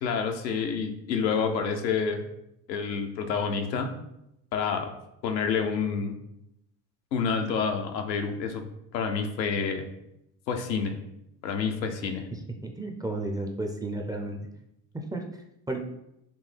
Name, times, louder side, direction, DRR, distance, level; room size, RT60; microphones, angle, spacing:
voice 1, 0.0-2.2 2.7-3.9 4.5-4.9 5.2-6.2 7.1-8.6 8.9-9.9 10.5-11.0 11.4-12.3, left 5 dB, 85° left, 4 dB, 0.6 m, -28 dB
voice 2, 12.3-14.5 14.9-15.8, right 2 dB, 10° right, 2 dB, 0.4 m, -33 dB
4.3 x 2.7 x 3.3 m, 0.83 s
hypercardioid pair, 60°, 50 cm